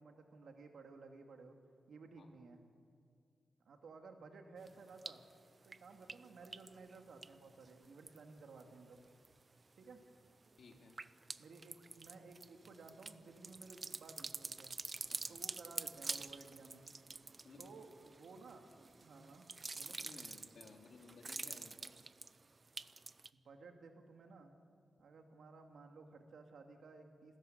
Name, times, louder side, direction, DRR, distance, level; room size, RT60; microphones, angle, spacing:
voice 1, 0.0-1.6 1.9-2.6 3.6-5.2 5.6-9.0 9.7-10.0 11.4-14.7 15.3-16.9 17.6-18.7 19.0-20.0 23.3-24.5 25.0-27.4, right 4 dB, 80° right, 3 dB, 2.7 m, -56 dB
sound 1, 4.7-5.3 5.6-8.6 9.0-9.5 9.9-23.3, right 3 dB, 40° right, 0.7 m, -48 dB
voice 2, 10.6-11.0 15.1-15.4 17.4-17.7 20.0-21.9, left 4 dB, 70° left, 2 dB, 3.4 m, -58 dB
29.0 x 13.5 x 9.6 m, 2.2 s
cardioid pair, 80°, 0 cm